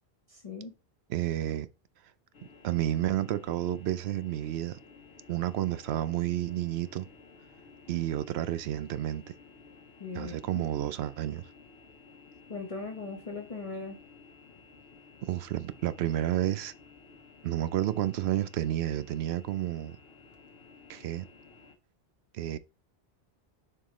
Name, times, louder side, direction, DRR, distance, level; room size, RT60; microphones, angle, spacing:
voice 1, 0.3-0.7 10.0-10.6 12.5-14.0, left 4 dB, 35° left, 1.0 m, -39 dB
voice 2, 1.1-1.7 2.6-4.8 5.3-7.1 7.9-9.3 10.1-11.4 15.2-16.7 17.4-20.0 20.9-21.3 22.3-22.6, right 12 dB, 85° right, 0.8 m, -30 dB
sound 1, 2.3-21.8, left 4 dB, 70° left, 1.3 m, -55 dB
7.1 x 4.6 x 3.1 m
omnidirectional pair, 1.1 m